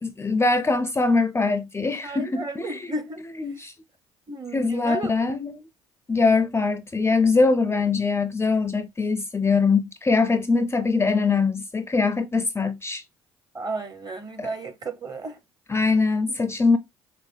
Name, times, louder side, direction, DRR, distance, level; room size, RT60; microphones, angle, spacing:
voice 1, 0.0-2.9 3.4-3.7 4.5-5.7 6.1-13.0 14.4-14.5 15.7-16.8, left 4 dB, 20° left, 0.4 m, -22 dB
voice 2, 2.0-3.2 4.3-5.1 13.5-15.4, right 3 dB, 30° right, 0.9 m, -33 dB
5.5 x 2.0 x 3.3 m
hypercardioid pair, 65°, 14 cm